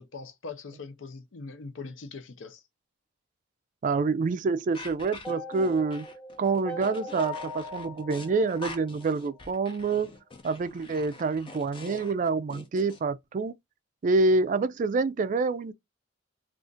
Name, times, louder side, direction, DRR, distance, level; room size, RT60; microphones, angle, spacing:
voice 1, 0.0-2.6, left 4 dB, 75° left, 0.6 m, -41 dB
voice 2, 3.8-6.1 6.4-10.1 10.4-13.5 14.0-15.7, right 3 dB, 40° right, 0.3 m, -27 dB
sound 1, 4.7-13.0, left 2 dB, 25° left, 0.5 m, -45 dB
sound 2, 5.2-9.4, left 1 dB, 5° left, 0.9 m, -40 dB
2.5 x 2.4 x 3.7 m
head